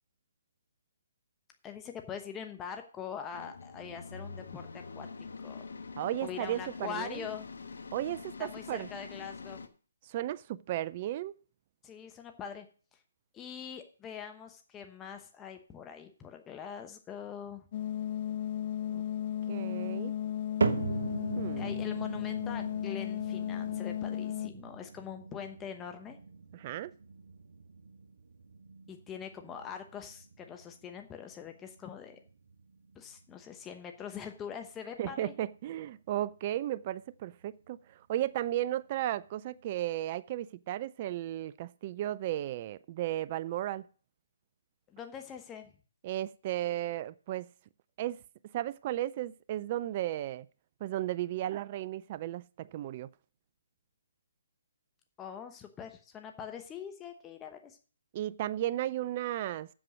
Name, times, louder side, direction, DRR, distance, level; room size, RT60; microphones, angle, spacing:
voice 1, 1.6-5.1 5.4-5.7 6.2-7.5 8.4-9.6 11.8-12.7 13.3-17.6 21.6-26.2 28.9-32.2 32.9-35.3 44.9-45.7 55.2-57.8, left 7 dB, 15° left, 1.0 m, -43 dB
sound 1, 3.3-9.7, left 4 dB, 70° left, 1.1 m, -45 dB
voice 2, 6.0-7.2 7.9-8.9 10.0-11.3 18.9-19.0 19.5-20.1 21.4-21.8 26.5-26.9 35.0-43.9 46.0-47.5 48.0-48.2 48.5-50.5 50.8-53.1 58.1-59.7, right 13 dB, 35° right, 0.3 m, -35 dB
sound 2, 17.7-24.5, left 10 dB, 40° left, 0.4 m, -35 dB
sound 3, 20.6-36.9 37.2-37.8 38.4-38.5 39.3-39.4, right 4 dB, 70° right, 1.0 m, -40 dB
7.9 x 7.4 x 6.2 m
figure-of-eight pair, 140°, 0 cm